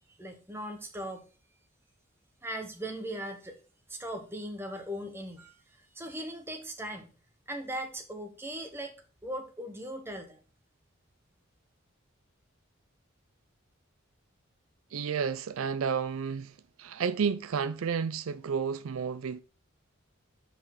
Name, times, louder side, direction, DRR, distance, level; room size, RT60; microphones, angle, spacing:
voice 1, 0.2-1.3 2.4-3.6 3.9-5.6 5.9-7.1 7.5-8.9 9.2-10.4, right 1 dB, 10° right, 1.0 m, -38 dB
voice 2, 14.9-19.4, right 6 dB, 80° right, 0.4 m, -31 dB
5.4 x 4.8 x 5.8 m
head